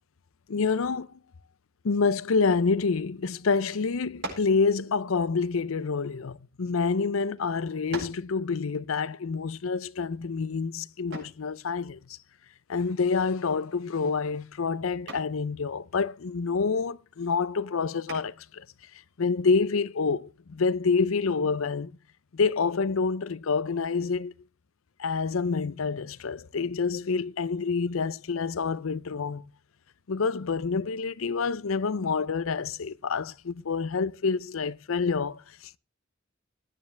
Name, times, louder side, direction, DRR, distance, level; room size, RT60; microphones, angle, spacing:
voice 1, 0.5-1.2 1.8-12.2 12.7-18.6 19.2-21.9 22.3-24.3 25.0-29.4 30.1-35.8, left 4 dB, 75° left, 0.6 m, -27 dB
sound 1, 4.2-4.6 5.5-6.7 7.4-7.5 7.9-8.3 11.1-11.5 13.4-13.7 14.1-14.5 15.1-15.4 18.1-18.5, right 2 dB, 65° right, 7.6 m, -40 dB
20.5 x 9.6 x 3.3 m
head